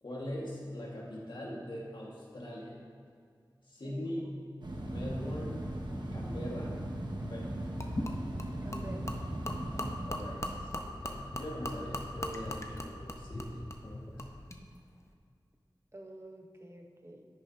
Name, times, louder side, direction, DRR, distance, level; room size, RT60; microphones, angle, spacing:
voice 1, 0.0-2.8 3.7-4.2 4.8-5.5 6.1-6.8 7.3-7.5 10.1-14.3, equal, 70° left, -5 dB, 1.9 m, -41 dB
sound 1, 4.6-10.9, right 1 dB, 65° right, 1.1 m, -38 dB
Gurgling / Liquid, 7.8-14.6, left 1 dB, 35° left, 0.8 m, -40 dB
voice 2, 8.6-9.2 11.1-11.3 15.9-17.3, right 1 dB, 35° right, 2 dB, 1.0 m, -48 dB
10.5 x 9.0 x 2.8 m, 2.1 s
wide cardioid pair, 45°, 8 cm